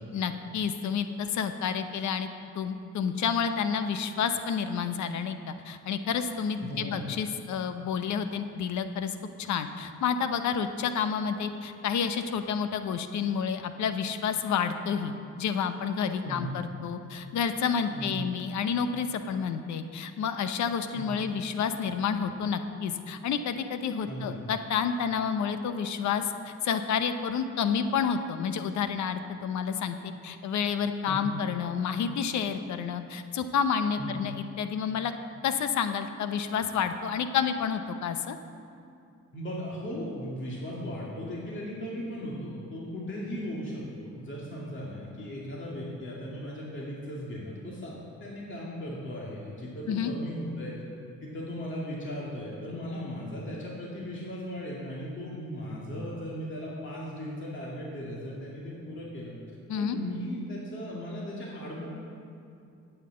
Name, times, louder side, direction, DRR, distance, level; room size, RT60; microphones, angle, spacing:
voice 1, 0.1-2.3 2.5-35.1 35.4-38.4 49.9-50.1 59.7-60.0, left 7 dB, 70° left, 9 dB, 0.8 m, -30 dB
voice 2, 6.6-7.1 16.2-16.5 17.9-18.2 20.9-21.2 24.0-24.4 31.1-31.3 34.0-34.2 39.3-50.8 51.2-59.3 59.7-61.9, equal, 40° left, -5 dB, 2.4 m, -37 dB
9.1 x 8.2 x 7.7 m, 2.5 s
cardioid pair, 90°, 30 cm